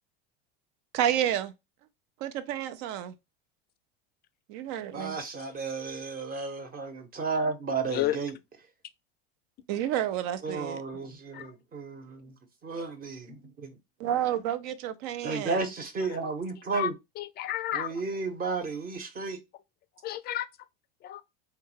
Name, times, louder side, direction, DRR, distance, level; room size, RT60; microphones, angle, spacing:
voice 1, 0.9-1.5 2.2-3.1 4.5-5.1 9.7-10.8 14.0-15.6, right 11 dB, 60° right, 0.6 m, -30 dB
voice 2, 4.9-8.3 10.4-12.3 12.6-13.7 15.2-16.9 17.7-19.4, right 4 dB, 30° right, 1.0 m, -33 dB
voice 3, 17.2-17.9 20.0-20.5 21.0-21.2, left 13 dB, 35° left, 0.4 m, -31 dB
3.4 x 2.3 x 3.1 m
supercardioid pair, 110°, 29 cm